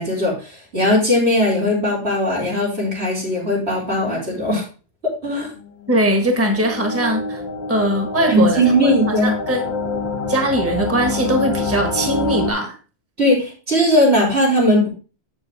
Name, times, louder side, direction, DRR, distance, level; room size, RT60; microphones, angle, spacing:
voice 1, 0.0-4.6 5.2-5.5 8.3-9.3 13.2-14.9, equal, 85° right, -4 dB, 4.4 m, -18 dB
sound 1, 5.6-12.5, left 3 dB, 80° left, 1.9 m, -26 dB
voice 2, 5.9-7.4 7.7-9.7 10.3-12.8, right 1 dB, 15° right, 5 dB, 1.3 m, -20 dB
7.7 x 7.3 x 3.4 m, 0.34 s
omnidirectional pair, 1.1 m